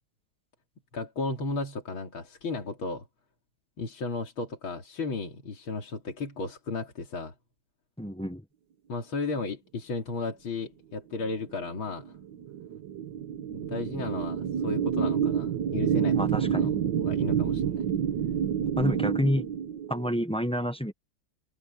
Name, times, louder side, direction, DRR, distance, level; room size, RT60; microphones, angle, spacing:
voice 1, 0.9-3.1 3.8-7.3 8.9-12.2 13.5-16.7 17.0-17.9, left 3 dB, 80° left, 3.7 m, -34 dB
voice 2, 8.0-8.4 16.1-16.7 18.8-19.5 19.9-20.9, equal, 5° left, 0.7 m, -28 dB
sound 1, 11.4-20.1, right 8 dB, 65° right, 1.7 m, -28 dB
omnidirectional pair, 2.2 m